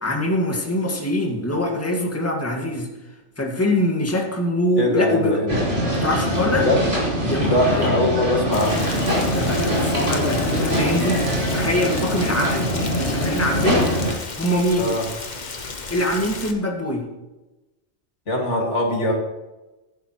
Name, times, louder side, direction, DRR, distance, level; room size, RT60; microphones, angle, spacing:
voice 1, 0.0-2.9 3.4-5.4 5.9-6.7 7.2-7.9 9.2-11.3 11.5-13.9 14.4-14.9 15.9-17.1, left 1 dB, 10° left, 0 dB, 1.9 m, -23 dB
voice 2, 4.8-5.6 6.5-6.9 7.4-8.8 14.8-15.0 18.3-19.1, left 1 dB, 75° left, -1 dB, 2.7 m, -21 dB
sound 1, 5.5-14.1, equal, 45° right, 4.2 m, -23 dB
Rain, 8.5-16.5, left 3 dB, 40° left, 1.2 m, -34 dB
15.0 x 11.5 x 3.1 m, 1.1 s
omnidirectional pair, 1.2 m